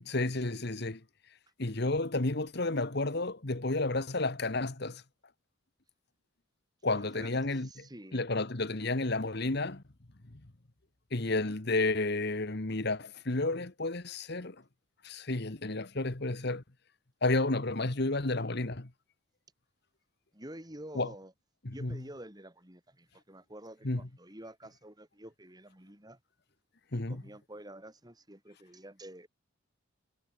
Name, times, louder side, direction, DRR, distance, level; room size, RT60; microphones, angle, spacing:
voice 1, 0.0-1.0 1.6-5.0 6.8-9.8 11.1-14.5 15.0-16.6 17.2-18.9 20.9-21.1 21.6-22.0 23.8-24.0 26.9-27.2, left 2 dB, 50° left, 1.4 m, -31 dB
voice 2, 6.9-7.3 7.6-8.2 20.3-21.3 21.7-26.2 26.9-29.3, right 1 dB, 20° right, 3.7 m, -49 dB
head